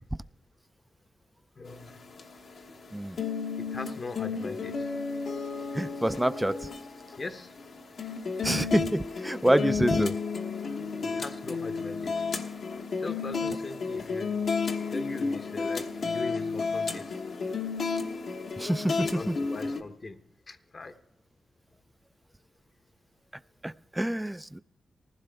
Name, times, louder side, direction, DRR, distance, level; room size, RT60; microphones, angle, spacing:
voice 1, 1.6-2.1 2.6-2.8 3.6-4.9 7.2-7.6 9.6-9.7 11.0-12.2 13.0-14.4 14.9-17.1 19.0-20.2 20.5-21.0, left 3 dB, 45° left, 8 dB, 0.9 m, -40 dB
sound 1, 1.7-19.8, left 4 dB, 75° left, 1.2 m, -32 dB
voice 2, 5.7-6.7 8.4-10.2 18.6-19.4 23.6-24.6, right 1 dB, 10° right, 15 dB, 0.4 m, -27 dB
19.5 x 15.5 x 3.4 m, 0.87 s
cardioid pair, 70°, 0 cm